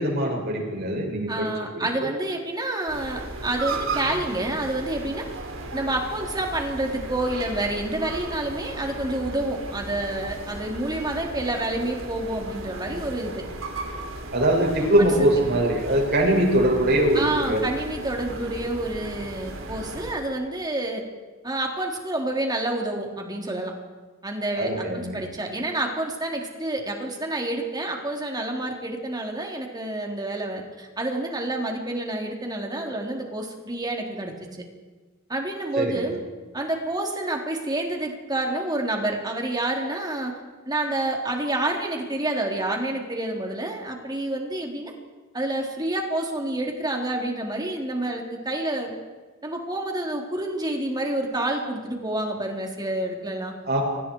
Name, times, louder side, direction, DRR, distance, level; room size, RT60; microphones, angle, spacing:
voice 1, 0.0-2.1 14.3-17.6 24.5-25.2 35.8-36.0 53.7-53.8, right 1 dB, 50° right, 0 dB, 6.8 m, -22 dB
voice 2, 1.3-5.3 5.7-13.4 15.0-15.1 17.1-21.0 21.4-23.7 24.2-34.6 35.3-36.2 36.5-40.4 40.7-44.9 45.3-48.9 49.4-53.5, right 1 dB, 20° right, 1 dB, 3.8 m, -28 dB
sound 1, 2.9-20.1, right 2 dB, 70° right, 4.6 m, -36 dB
30.0 x 25.5 x 4.8 m, 1.3 s
head